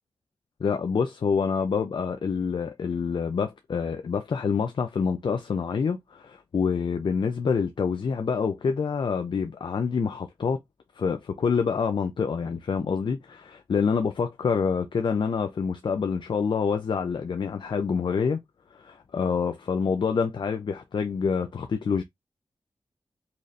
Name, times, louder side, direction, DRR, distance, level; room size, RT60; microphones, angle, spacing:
voice 1, 0.6-10.6 11.0-18.4 18.7-22.0, left 5 dB, 65° left, 0.4 m, -27 dB
4.1 x 3.1 x 2.5 m
cardioid pair, 65°, 9 cm